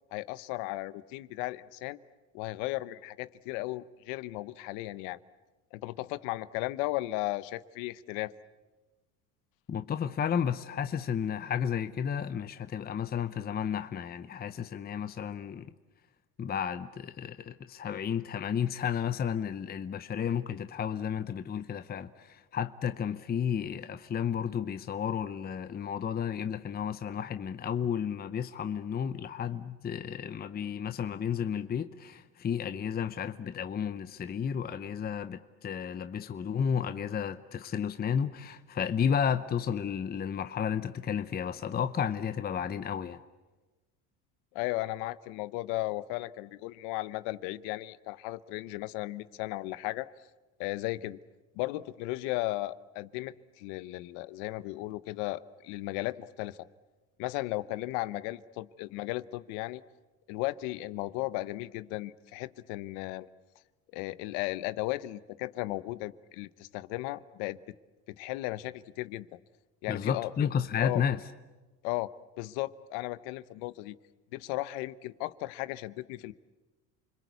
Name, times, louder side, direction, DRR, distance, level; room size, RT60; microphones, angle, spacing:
voice 1, 0.1-2.0 2.3-5.2 5.7-8.3 44.5-50.1 50.6-51.2 51.5-56.6 57.2-59.8 60.3-63.3 63.9-67.6 68.1-69.4 69.8-70.3 70.7-71.0 71.8-73.9 74.3-76.3, left 18 dB, 75° left, 0.9 m, -35 dB
voice 2, 9.7-15.7 16.4-43.2 69.9-71.2, left 8 dB, 25° left, 0.8 m, -32 dB
29.5 x 21.5 x 8.2 m
supercardioid pair, 105°, 39 cm